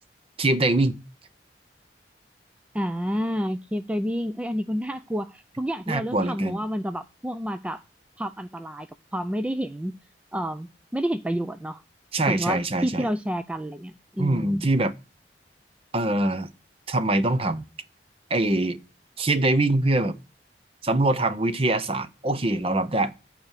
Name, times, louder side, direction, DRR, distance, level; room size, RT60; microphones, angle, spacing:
voice 1, 0.4-1.0 5.9-6.6 12.1-13.1 14.2-14.9 15.9-16.5 16.9-17.6 18.3-18.8 19.2-20.2 20.8-23.1, right 2 dB, 35° right, 0.8 m, -23 dB
voice 2, 2.7-7.8 8.2-9.9 10.3-10.7 10.9-11.8 12.3-14.6, equal, 5° right, 0.4 m, -29 dB
8.7 x 4.9 x 7.3 m
head